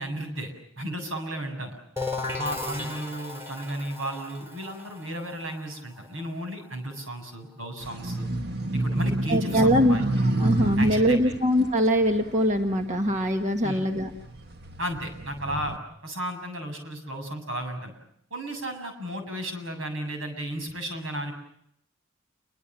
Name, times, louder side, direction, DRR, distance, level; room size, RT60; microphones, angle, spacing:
voice 1, 0.0-1.8 2.4-8.3 8.7-10.0 10.8-11.4 13.6-13.8 14.8-15.8 16.0-17.9 18.3-21.3, right 1 dB, 75° right, 5 dB, 7.5 m, -34 dB
sound 1, 2.0-7.5, left 3 dB, 15° right, 4.6 m, -36 dB
sound 2, 7.8-13.4 13.9-15.8, right 2 dB, 55° right, 1.8 m, -29 dB
voice 2, 9.3-10.0 10.4-14.1, equal, 35° right, 4 dB, 1.5 m, -22 dB
29.0 x 24.0 x 7.6 m, 0.73 s
head